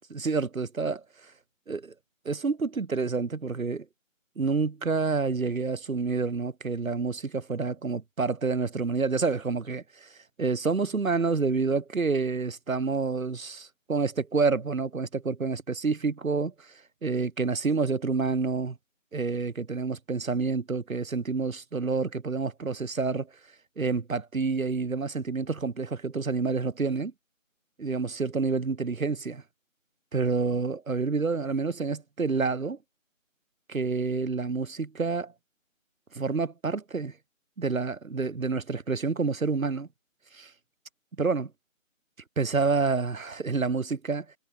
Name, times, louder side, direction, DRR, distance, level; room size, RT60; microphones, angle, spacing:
voice 1, 0.1-1.3 1.7-1.9 2.2-3.9 4.4-16.7 17.0-18.8 19.1-23.3 23.8-27.1 27.8-29.4 30.1-32.8 33.7-35.3 36.1-37.2 37.6-39.9 40.3-40.5 41.2-41.5 42.4-44.3, right 4 dB, 90° right, 1.1 m, -28 dB
figure-of-eight pair, 165°, 40 cm